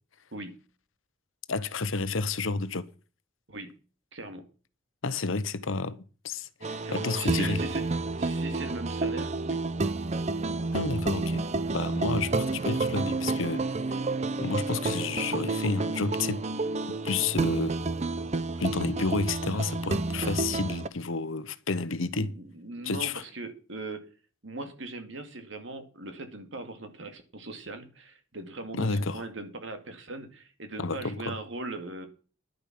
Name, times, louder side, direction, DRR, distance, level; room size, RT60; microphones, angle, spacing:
voice 1, 0.3-0.6 3.5-3.8 4.1-4.5 6.8-7.9 8.2-9.6 22.1-24.1 24.4-32.1, right 2 dB, 65° right, 2.4 m, -40 dB
voice 2, 1.5-2.8 5.0-7.6 10.7-11.4 11.7-13.7 14.4-16.4 16.9-17.8 18.6-22.3 22.8-23.2 28.7-29.2 30.8-31.3, left 3 dB, 80° left, 1.0 m, -30 dB
sound 1, 6.6-20.9, right 3 dB, 35° right, 0.6 m, -30 dB
11.0 x 8.6 x 6.0 m
head